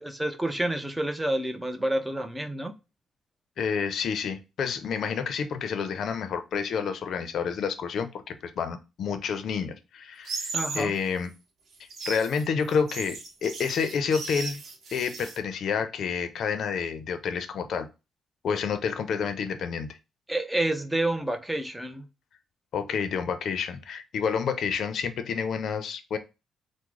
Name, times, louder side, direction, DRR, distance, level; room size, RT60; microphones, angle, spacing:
voice 1, 0.0-2.7 10.5-10.9 20.3-22.0, right 1 dB, 10° right, 0.6 m, -29 dB
voice 2, 3.6-11.3 12.1-14.6 14.9-17.9 18.4-19.9 22.7-26.2, left 6 dB, 65° left, 0.5 m, -29 dB
sound 1, 10.2-10.9 11.7-15.4, right 4 dB, 60° right, 0.9 m, -36 dB
3.6 x 2.1 x 3.1 m
cardioid pair, 100°, 0 cm